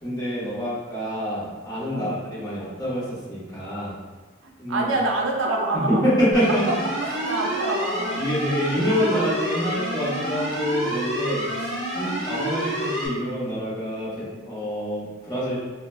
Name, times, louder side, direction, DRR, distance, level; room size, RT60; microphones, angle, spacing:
voice 1, 0.0-4.0 4.6-4.9 5.7-6.6 8.2-11.7 11.9-15.6, equal, 20° left, -10 dB, 1.2 m, -26 dB
voice 2, 4.4-6.0 6.5-6.6 7.0-8.2 11.9-12.2, right 2 dB, 80° right, 0 dB, 0.5 m, -27 dB
sound 1, 6.3-13.1, right 1 dB, ahead, 1.4 m, -28 dB
4.7 x 2.1 x 2.3 m, 1.3 s
head